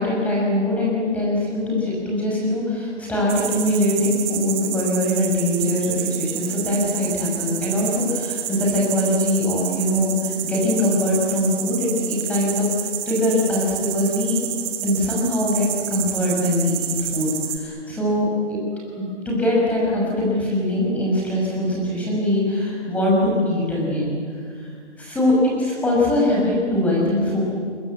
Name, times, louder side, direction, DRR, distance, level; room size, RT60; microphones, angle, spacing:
voice 1, 0.0-14.4 14.8-18.6 18.9-24.1 24.5-24.7 25.0-27.4, left 1 dB, 5° left, -4 dB, 5.5 m, -22 dB
sound 1, 3.3-17.6, right 11 dB, 10° right, 1.1 m, -29 dB
26.5 x 22.5 x 8.3 m, 2.2 s
figure-of-eight pair, 155°, 35 cm